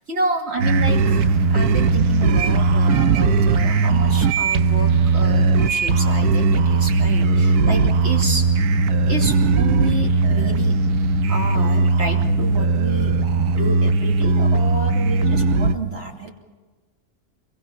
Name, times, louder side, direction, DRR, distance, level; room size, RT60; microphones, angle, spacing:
voice 1, 0.1-8.4 9.1-10.7 11.3-13.1 13.5-16.3, right 2 dB, 45° right, 1 dB, 3.0 m, -29 dB
sound 1, 0.6-15.7, right 4 dB, 75° right, 1.4 m, -18 dB
26.5 x 22.5 x 5.9 m, 1.3 s
omnidirectional pair, 1.6 m